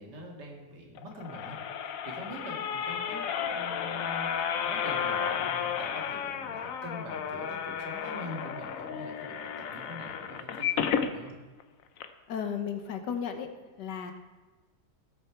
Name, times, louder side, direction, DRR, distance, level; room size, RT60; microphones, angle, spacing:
voice 1, 0.0-11.3, equal, 75° right, 0 dB, 2.4 m, -44 dB
sound 1, 1.0-11.1 11.6-11.7 12.0-12.1, left 7 dB, 60° left, 1.0 m, -33 dB
voice 2, 12.3-13.5 13.8-14.1, left 7 dB, 80° left, 6 dB, 1.7 m, -34 dB
16.5 x 6.8 x 4.6 m, 1.2 s
omnidirectional pair, 1.8 m